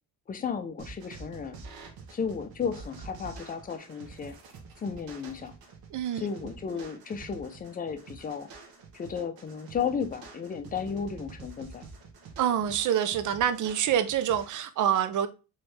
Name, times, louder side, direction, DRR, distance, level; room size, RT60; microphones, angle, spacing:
voice 1, 0.3-1.6 2.1-4.4 4.8-5.5 6.2-8.5 8.9-11.8, left 6 dB, 25° left, 8 dB, 0.4 m, -34 dB
sound 1, 0.8-14.5, right 4 dB, 85° right, 1.2 m, -47 dB
voice 2, 5.9-6.3 12.4-15.3, right 9 dB, 55° right, 11 dB, 0.5 m, -26 dB
4.5 x 3.2 x 3.2 m, 0.31 s
cardioid pair, 170°, 36 cm